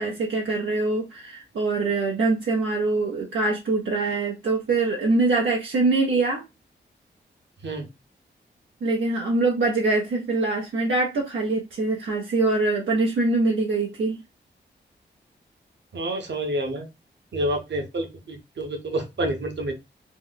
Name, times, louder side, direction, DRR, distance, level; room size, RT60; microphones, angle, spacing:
voice 1, 0.0-6.4 8.8-14.2, right 3 dB, 80° right, 0.7 m, -24 dB
voice 2, 15.9-16.9 17.3-19.7, right 1 dB, 65° right, 1.0 m, -28 dB
3.0 x 2.1 x 3.8 m
cardioid pair, 55°, 20 cm